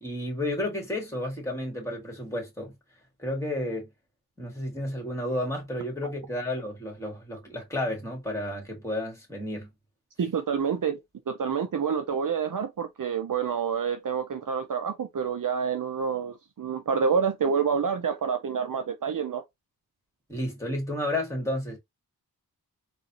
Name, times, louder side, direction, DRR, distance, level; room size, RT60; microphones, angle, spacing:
voice 1, 0.0-2.7 3.2-3.9 4.4-9.7 20.3-21.8, left 1 dB, 5° left, 2.1 m, -32 dB
voice 2, 10.2-11.0 11.3-19.4, right 6 dB, 55° right, 0.6 m, -28 dB
3.9 x 2.5 x 2.9 m
wide cardioid pair, 90°, 39 cm